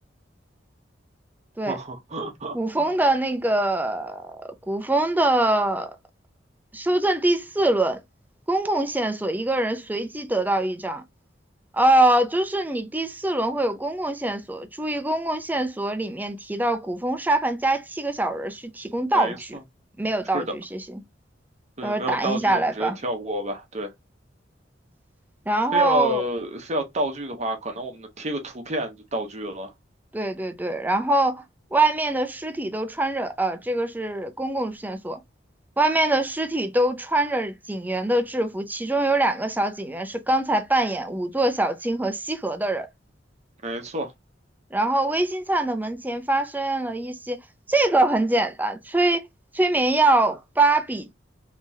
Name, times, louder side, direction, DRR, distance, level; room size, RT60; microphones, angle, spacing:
voice 1, 1.7-2.6 19.1-19.4 20.3-20.5 21.8-23.9 25.7-29.7 43.6-44.1, right 1 dB, 40° right, 0.9 m, -29 dB
voice 2, 2.5-4.3 4.7-6.0 6.7-8.0 8.5-11.0 11.7-19.6 20.0-21.0 21.8-23.0 25.5-26.2 30.1-31.4 31.7-35.2 35.8-42.9 44.7-47.4 47.7-49.2 49.5-51.1, right 2 dB, 10° right, 0.5 m, -24 dB
3.5 x 3.0 x 2.7 m
head